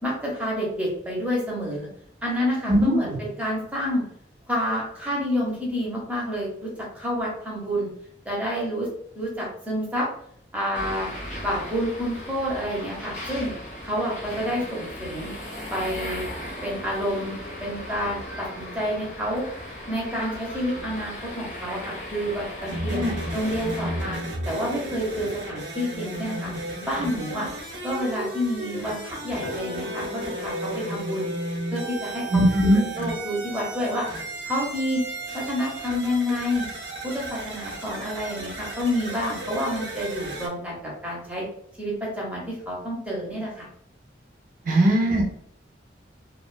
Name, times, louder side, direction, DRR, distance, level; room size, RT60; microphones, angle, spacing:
voice 1, 0.0-1.9 2.2-4.0 4.5-7.9 8.2-8.9 9.2-10.1 10.5-11.1 11.4-13.5 13.8-15.3 15.7-16.3 16.6-17.4 17.6-19.5 19.9-23.0 23.3-24.2 24.5-26.5 26.8-27.5 27.8-31.3 31.7-32.4 33.0-34.1 34.4-35.0 35.3-36.7 37.0-41.4 41.8-43.7 44.6-45.0, equal, 10° right, -4 dB, 0.7 m, -28 dB
voice 2, 2.7-3.2 22.9-23.1 32.3-32.8 44.7-45.3, right 1 dB, 45° right, -1 dB, 0.6 m, -20 dB
sound 1, 10.7-24.2, left 1 dB, 40° left, 0.7 m, -37 dB
sound 2, 22.7-40.5, right 1 dB, 80° right, 0.7 m, -34 dB
sound 3, 29.4-35.5, left 1 dB, 85° left, 0.5 m, -39 dB
2.3 x 2.2 x 2.4 m, 0.66 s
head